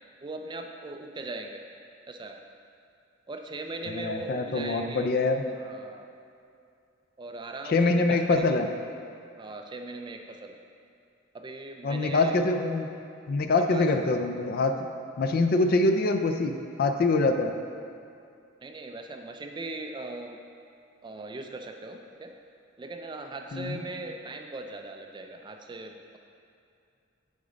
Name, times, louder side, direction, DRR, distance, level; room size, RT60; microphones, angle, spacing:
voice 1, 0.2-1.6 2.1-2.4 3.3-5.1 5.6-6.1 7.2-8.5 9.4-10.5 11.3-12.4 13.7-13.9 18.6-20.4 21.0-22.3 22.8-26.2, right 2 dB, 25° right, 4 dB, 0.3 m, -39 dB
voice 2, 3.9-5.4 7.7-8.7 11.8-12.9 13.3-14.7 15.2-17.5 23.5-23.8, left 3 dB, 50° left, 6 dB, 0.4 m, -24 dB
7.0 x 3.9 x 5.1 m, 2.5 s
head